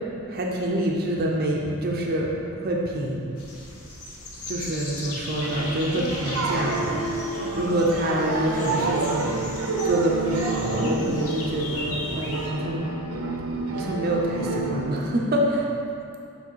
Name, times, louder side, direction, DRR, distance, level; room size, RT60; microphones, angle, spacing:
voice 1, 0.3-3.2 4.5-7.0 7.6-9.4 9.8-12.9 13.7-15.6, right 1 dB, 40° right, -2 dB, 0.6 m, -26 dB
running man, 3.4-12.5, left 2 dB, 80° left, 0.9 m, -38 dB
sound 1, 5.4-15.0, right 3 dB, 80° right, 0.7 m, -29 dB
7.2 x 3.6 x 4.6 m, 2.6 s
head